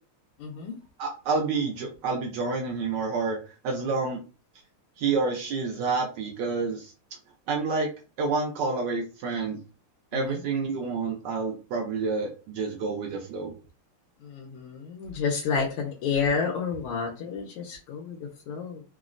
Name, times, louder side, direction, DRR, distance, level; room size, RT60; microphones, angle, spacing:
voice 1, 0.4-0.7 10.1-10.4 14.2-18.8, left 5 dB, 85° left, -1 dB, 1.6 m, -30 dB
voice 2, 1.0-4.2 5.0-6.9 7.5-7.9 8.2-9.6 10.1-13.6, right 4 dB, 75° right, 2 dB, 1.0 m, -28 dB
3.7 x 2.0 x 2.4 m, 0.34 s
omnidirectional pair, 2.4 m